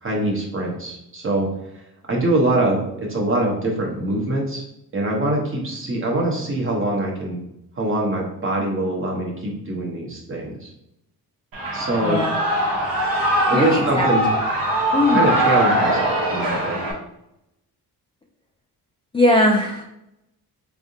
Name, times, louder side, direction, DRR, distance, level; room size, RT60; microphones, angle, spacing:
voice 1, 0.0-1.5 2.1-4.6 4.9-7.4 7.8-10.7 11.7-12.2 13.5-14.3 15.1-16.8, right 2 dB, 35° right, -2 dB, 1.0 m, -23 dB
Shout / Cheering, 11.5-16.9, right 1 dB, 60° right, 1.2 m, -21 dB
voice 2, 12.0-12.4 13.5-14.1 14.9-15.2 19.1-19.8, left 1 dB, 15° left, 0 dB, 0.3 m, -19 dB
3.6 x 3.5 x 2.6 m, 0.81 s
cardioid pair, 115°, 39 cm